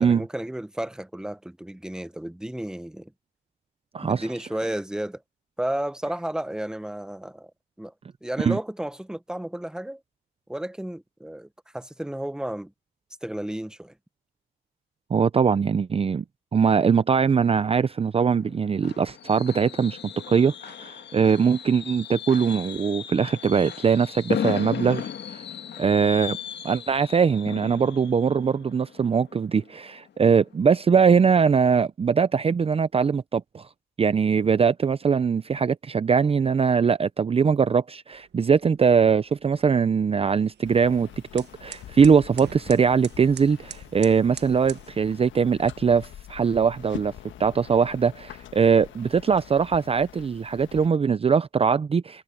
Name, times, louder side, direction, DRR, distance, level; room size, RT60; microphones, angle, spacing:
voice 1, 0.0-3.1 4.0-5.2 5.6-7.5 7.8-7.9 8.2-10.0 10.5-12.7 13.2-13.9, right 1 dB, 5° right, 1.0 m, -32 dB
voice 2, 3.9-4.3 8.4-8.6 15.1-16.2 16.5-20.0 20.3-25.4 25.8-26.4 26.6-33.7 34.0-47.1 47.4-52.2, right 6 dB, 30° right, 0.6 m, -21 dB
Fireworks, 18.2-29.9 30.3-30.5 30.8-30.9, left 9 dB, 60° left, 1.9 m, -36 dB
sound 1, 38.1-44.9, right 9 dB, 55° right, 1.2 m, -46 dB
sound 2, 40.6-50.9, left 11 dB, 75° left, 1.4 m, -44 dB
cardioid pair, 90°, 20 cm